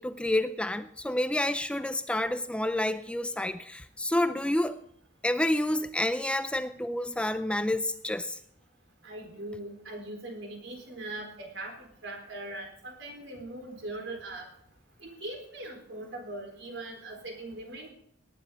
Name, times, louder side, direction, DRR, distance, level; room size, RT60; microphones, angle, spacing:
voice 1, 0.0-4.8 5.2-8.4, left 1 dB, 5° left, 0.4 m, -29 dB
voice 2, 9.0-14.5 15.0-17.9, right 2 dB, 75° right, 4.1 m, -40 dB
18.5 x 10.5 x 3.8 m
head